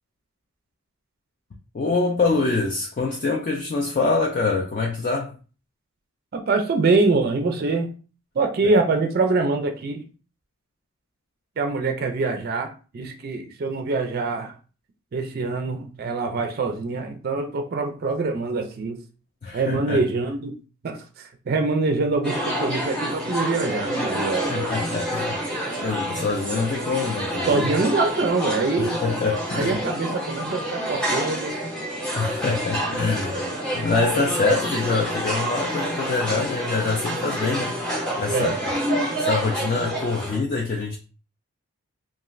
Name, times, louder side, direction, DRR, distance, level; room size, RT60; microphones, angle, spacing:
voice 1, 1.7-5.3 8.6-8.7 19.4-20.0 24.5-25.4 25.8-27.7 28.8-29.8 32.1-33.4 33.7-38.5 39.2-41.0, left 4 dB, 35° left, 0.3 m, -25 dB
voice 2, 6.3-7.9 8.3-10.0 11.6-14.5 15.1-19.0 19.5-20.6 20.8-24.5 25.8-25.9 27.5-29.0 29.5-31.5 38.3-38.7, right 3 dB, 45° right, 0.4 m, -24 dB
sound 1, 22.2-40.4, equal, 5° left, 0.7 m, -28 dB
2.4 x 2.3 x 3.0 m
head